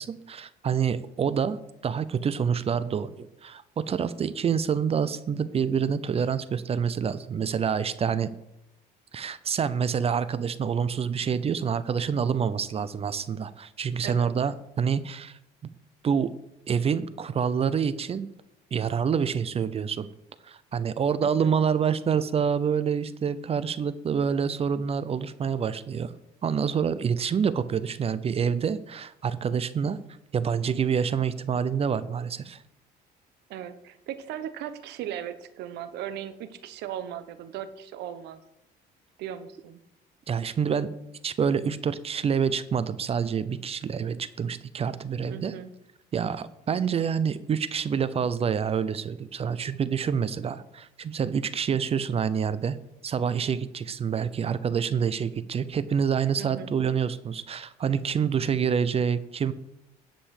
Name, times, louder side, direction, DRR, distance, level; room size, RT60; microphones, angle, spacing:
voice 1, 0.0-8.3 9.1-15.4 16.0-16.3 16.7-18.3 18.7-20.1 20.4-26.1 26.4-30.0 30.3-32.6 40.3-40.9 41.2-45.5 46.1-52.8 53.0-59.5, right 7 dB, 35° right, 15 dB, 0.6 m, -27 dB
voice 2, 21.2-21.5 33.5-38.4 39.2-39.8 45.3-45.7 56.4-56.8, right 10 dB, 80° right, 11 dB, 1.1 m, -37 dB
10.0 x 5.5 x 6.5 m, 0.87 s
cardioid pair, 110°, 17 cm